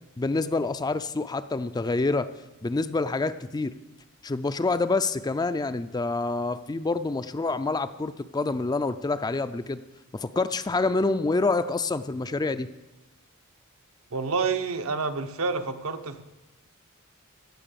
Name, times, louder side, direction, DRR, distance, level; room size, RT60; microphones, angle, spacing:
voice 1, 0.2-2.3 2.6-3.7 4.2-9.8 10.1-12.7, left 3 dB, 20° left, 12 dB, 0.4 m, -27 dB
voice 2, 14.1-16.2, right 4 dB, 70° right, 8 dB, 0.9 m, -28 dB
16.0 x 6.8 x 6.9 m, 1.1 s
head